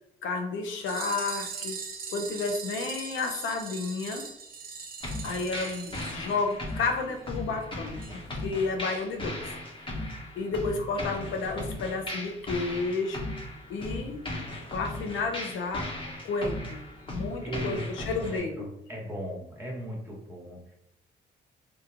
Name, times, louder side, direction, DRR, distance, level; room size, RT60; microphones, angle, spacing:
voice 1, 0.2-1.8 2.1-4.3 5.2-8.0 8.4-9.4 9.8-10.0 10.4-13.3 13.7-14.2 14.7-15.9 16.2-16.8 17.1-18.7, left 4 dB, 75° left, 4 dB, 0.5 m, -31 dB
sound 1, 0.7-6.9 7.2-7.3 7.5-7.6 8.0-8.1 8.4-8.5, right 5 dB, 45° right, 0.6 m, -40 dB
sound 2, 5.0-18.4, left 1 dB, 25° left, 1.0 m, -37 dB
voice 2, 17.4-20.6, equal, 10° right, -3 dB, 1.2 m, -38 dB
2.9 x 2.2 x 3.5 m, 0.80 s
cardioid pair, 90°, 20 cm